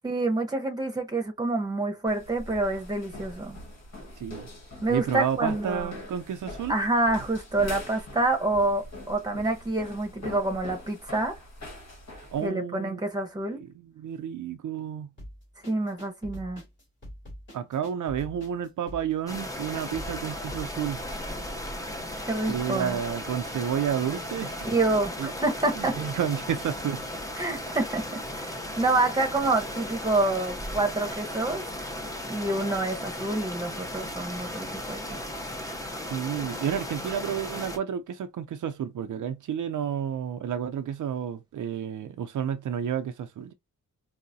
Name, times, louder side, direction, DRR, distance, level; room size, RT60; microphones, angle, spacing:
voice 1, 0.0-3.6 4.8-5.9 6.7-11.4 12.4-13.6 15.7-16.6 22.3-23.0 24.6-26.0 27.4-31.6 32.3-35.2, right 2 dB, 10° right, 1.0 m, -27 dB
sound 1, 2.1-12.5, left 1 dB, 55° left, 1.6 m, -43 dB
voice 2, 4.2-4.5 4.9-6.7 12.1-13.0 13.5-15.1 17.5-21.0 22.5-24.7 25.2-25.3 25.7-27.0 36.0-43.5, right 8 dB, 70° right, 0.5 m, -31 dB
sound 2, 15.2-20.7, equal, 35° left, 2.3 m, -44 dB
sound 3, 19.3-37.8, left 1 dB, 10° left, 0.7 m, -36 dB
4.6 x 2.1 x 2.7 m
wide cardioid pair, 140°, 32 cm